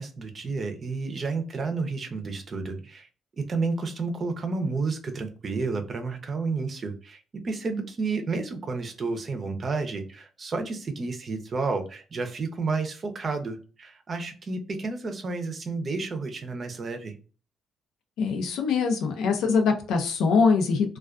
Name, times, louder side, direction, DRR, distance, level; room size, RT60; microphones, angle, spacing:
voice 1, 0.0-3.1 3.4-17.1, right 4 dB, 45° right, 6 dB, 0.6 m, -31 dB
voice 2, 18.2-21.0, left 5 dB, 85° left, 4 dB, 0.5 m, -23 dB
2.3 x 2.3 x 2.3 m, 0.36 s
cardioid pair, 90°, 0 cm